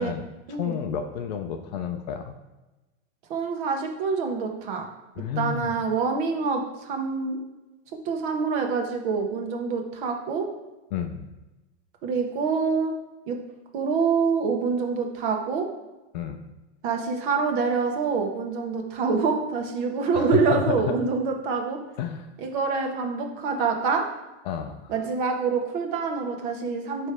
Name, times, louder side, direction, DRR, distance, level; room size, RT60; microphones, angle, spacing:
voice 1, 0.0-2.3 5.2-5.7 10.9-11.3 16.1-16.4 20.1-21.0 22.0-22.3 24.4-24.9, left 8 dB, 35° left, 6 dB, 0.5 m, -30 dB
voice 2, 3.3-4.9 5.4-7.4 8.0-10.5 12.0-12.9 13.3-13.4 13.7-15.7 16.8-21.8 22.4-24.0 24.9-27.1, right 5 dB, 45° right, 3 dB, 1.2 m, -26 dB
9.3 x 3.3 x 4.9 m, 1.1 s
supercardioid pair, 160°, 36 cm